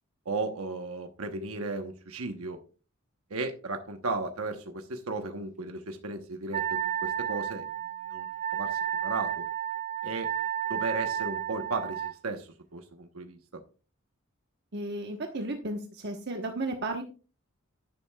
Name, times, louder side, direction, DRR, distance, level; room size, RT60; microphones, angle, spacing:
voice 1, 0.2-2.6 3.3-7.7 8.0-9.4 10.0-10.3 10.7-13.4, right 3 dB, 85° right, 6 dB, 1.0 m, -35 dB
Wind instrument woodwind instrument, 6.5-12.2, right 10 dB, 35° right, 0.4 m, -32 dB
voice 2, 14.7-17.0, right 2 dB, 50° right, 3 dB, 1.1 m, -34 dB
11.0 x 10.5 x 2.3 m, 0.36 s
head